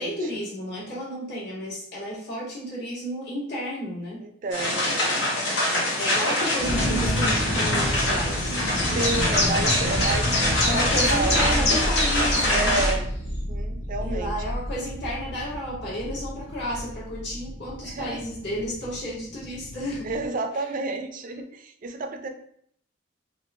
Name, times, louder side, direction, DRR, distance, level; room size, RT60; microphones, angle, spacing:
voice 1, 0.0-4.3 6.0-10.1 10.6-12.7 14.0-20.2, equal, 65° left, -7 dB, 1.3 m, -32 dB
voice 2, 4.2-5.9 8.8-11.6 12.5-14.3 17.8-18.2 20.0-22.3, right 3 dB, 45° right, 6 dB, 0.4 m, -31 dB
sound 1, 4.5-12.9, left 1 dB, 85° left, 1.1 m, -25 dB
sound 2, 6.6-20.3, equal, 15° left, 0.6 m, -30 dB
sound 3, 8.7-12.4, left 1 dB, 35° left, 1.2 m, -26 dB
3.5 x 2.4 x 2.5 m, 0.64 s
head